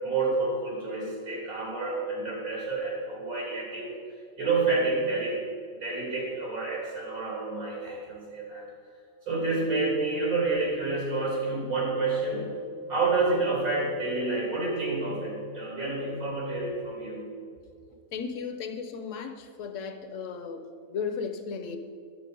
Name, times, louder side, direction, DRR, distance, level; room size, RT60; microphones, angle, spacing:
voice 1, 0.0-4.0 4.4-5.4 5.8-8.6 9.3-12.5 12.9-17.2, right 3 dB, 85° right, 3.8 m, -29 dB
voice 2, 18.1-21.8, left 6 dB, 65° left, 1.1 m, -35 dB
9.8 x 7.9 x 5.3 m
omnidirectional pair, 1.5 m